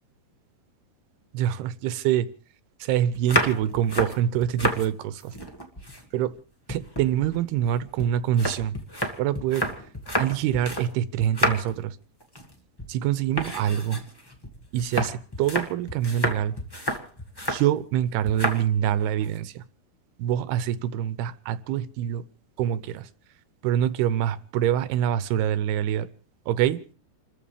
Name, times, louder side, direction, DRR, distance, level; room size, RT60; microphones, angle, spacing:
voice 1, 1.3-2.3 2.8-5.4 6.1-6.4 6.7-8.7 9.2-9.7 10.2-12.0 12.9-14.0 14.7-16.5 17.5-19.6 20.2-22.2 22.6-23.1 23.6-26.1 26.5-26.8, right 10 dB, 85° right, 2.9 m, -25 dB
sound 1, 3.1-4.9 5.2-6.4 6.7-10.9 11.2-11.8 12.2-12.5 12.8-13.0 13.3-17.7 18.2-18.6 19.0-19.4, equal, 30° left, 0.4 m, -30 dB
28.5 x 14.0 x 3.5 m
omnidirectional pair, 4.5 m